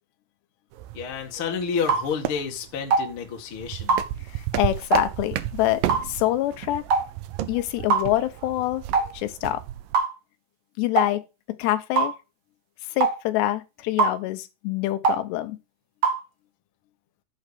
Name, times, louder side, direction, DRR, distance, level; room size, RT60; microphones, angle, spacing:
sound 1, 0.7-9.9, right 13 dB, 80° right, 2.0 m, -34 dB
voice 1, 0.9-4.0, left 6 dB, 45° left, 1.8 m, -30 dB
sound 2, 1.9-2.1 2.9-3.1 3.9-4.1 4.9-5.1 5.9-6.1 6.9-7.1 7.9-8.1 8.9-9.1 9.9-10.1 11.0-11.1 12.0-12.1 13.0-13.2 14.0-14.2 15.0-15.2 16.0-16.2, right 4 dB, 60° right, 1.4 m, -21 dB
voice 2, 4.3-6.8 7.5-8.8 9.1-9.6 10.8-11.2 11.6-12.1 12.9-15.6, left 14 dB, 80° left, 2.9 m, -26 dB
8.9 x 7.1 x 5.0 m
omnidirectional pair, 4.9 m